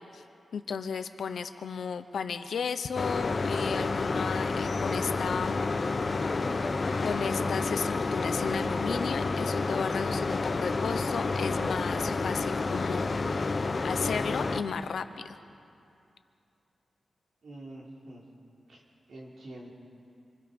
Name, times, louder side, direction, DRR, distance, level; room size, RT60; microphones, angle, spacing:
voice 1, 0.5-5.7 7.0-15.4, left 6 dB, 80° left, 10 dB, 0.9 m, -34 dB
sound 1, 3.0-14.6, left 3 dB, 35° left, 1.0 m, -29 dB
voice 2, 17.4-18.2 18.7-18.8 19.1-19.7, right 1 dB, 65° right, -3 dB, 4.2 m, -45 dB
27.0 x 24.0 x 5.4 m, 2.6 s
wide cardioid pair, 140°, 0 cm